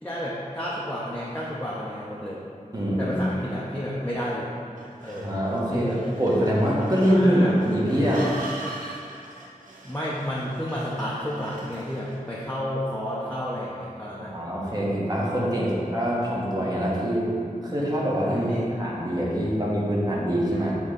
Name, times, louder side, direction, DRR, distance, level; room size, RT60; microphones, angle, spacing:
voice 1, 0.0-2.4 3.0-4.5 5.0-5.3 5.7-6.4 7.1-7.5 9.8-14.3 15.6-15.8 18.3-18.8, equal, 10° left, -7 dB, 0.7 m, -31 dB
voice 2, 2.7-3.2 5.1-5.9 6.2-8.3 14.2-18.5 18.8-20.8, equal, 25° right, -6 dB, 1.4 m, -24 dB
sound 1, 4.8-12.3, right 2 dB, 70° right, 1.0 m, -42 dB
7.8 x 3.2 x 3.7 m, 2.4 s
wide cardioid pair, 55°, 14 cm